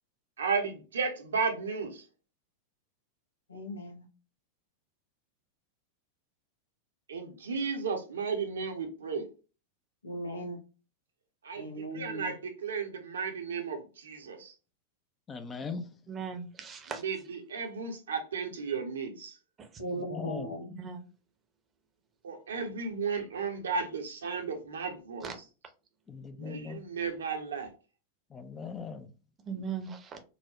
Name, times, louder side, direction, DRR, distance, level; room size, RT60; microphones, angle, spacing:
voice 1, 0.4-2.1 7.1-9.3 11.4-14.5 17.0-19.4 22.2-25.3 26.4-27.7, right 5 dB, 65° right, 0.8 m, -34 dB
voice 2, 3.5-4.1 10.0-10.6 11.5-12.3 19.8-20.7 29.5-29.6, equal, 75° left, 0.9 m, -38 dB
voice 3, 15.3-16.0 19.9-20.5 26.1-26.9 28.3-29.1, left 5 dB, 20° left, 0.5 m, -40 dB
voice 4, 16.1-17.0 19.6-19.7 20.8-21.1 25.2-25.4 29.5-30.2, right 6 dB, 25° right, 0.7 m, -38 dB
4.0 x 2.2 x 2.9 m
figure-of-eight pair, 90°, 0 cm